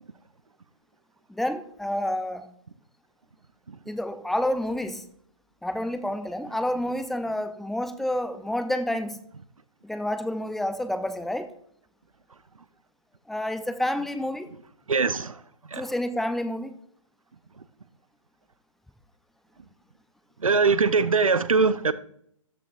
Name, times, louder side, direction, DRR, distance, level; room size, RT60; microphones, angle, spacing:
voice 1, 1.3-2.5 3.9-5.0 5.6-9.2 9.8-11.5 13.3-14.5 15.8-16.7, left 1 dB, ahead, 0.6 m, -29 dB
voice 2, 14.9-15.4 15.7-15.9 20.4-21.9, right 4 dB, 80° right, 0.7 m, -22 dB
13.5 x 13.0 x 2.5 m
figure-of-eight pair, 130°, 17 cm